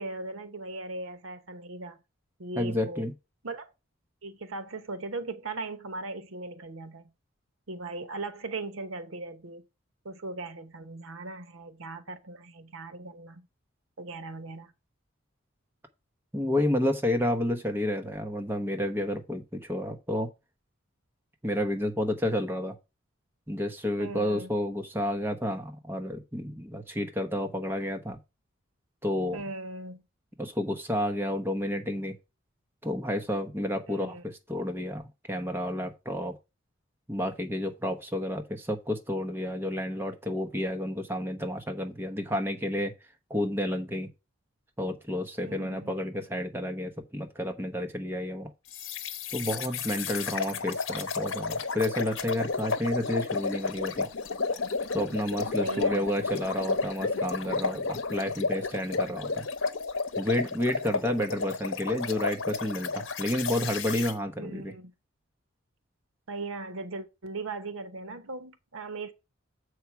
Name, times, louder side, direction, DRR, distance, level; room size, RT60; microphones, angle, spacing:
voice 1, 0.0-2.0 2.4-3.0 3.4-3.7 4.2-7.0 7.7-9.6 10.0-13.5 14.0-14.7 24.0-24.5 29.3-30.0 33.9-34.2 45.4-46.0 50.1-50.6 55.6-56.1 64.4-64.9 66.3-69.1, right 2 dB, 80° right, 1.0 m, -38 dB
voice 2, 2.6-3.1 16.3-20.3 21.4-22.7 23.5-28.2 29.0-29.4 30.4-32.1 32.8-36.4 37.1-42.9 43.3-44.1 44.8-48.5 49.3-54.1 54.9-59.5 60.2-64.7, left 1 dB, 10° right, 0.9 m, -30 dB
sound 1, 48.7-64.1, left 4 dB, 70° left, 0.9 m, -32 dB
7.3 x 4.7 x 5.8 m
head